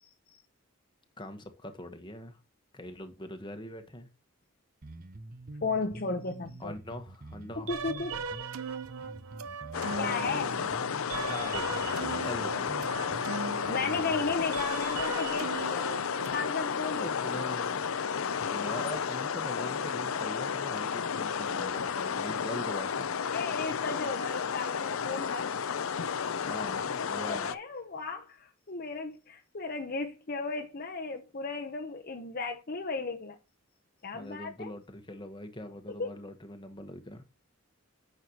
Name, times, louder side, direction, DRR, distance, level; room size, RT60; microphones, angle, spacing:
voice 1, 1.2-2.4 2.7-4.1 6.6-7.7 10.8-11.8 12.2-12.8 17.0-17.8 18.5-23.1 26.4-27.5 34.1-37.2, left 1 dB, 20° left, 1.2 m, -42 dB
Bass guitar, 4.8-14.4, right 2 dB, 40° right, 0.8 m, -46 dB
voice 2, 5.6-6.7 7.6-8.2 10.0-10.5 13.7-17.3 21.6-21.7 23.3-25.5 27.2-33.4 34.0-34.7 35.9-36.1, left 4 dB, 45° left, 0.8 m, -35 dB
sound 1, 7.7-16.3, right 5 dB, 85° right, 0.8 m, -39 dB
sound 2, 9.7-27.6, left 6 dB, 70° left, 0.5 m, -32 dB
10.0 x 6.6 x 2.9 m
head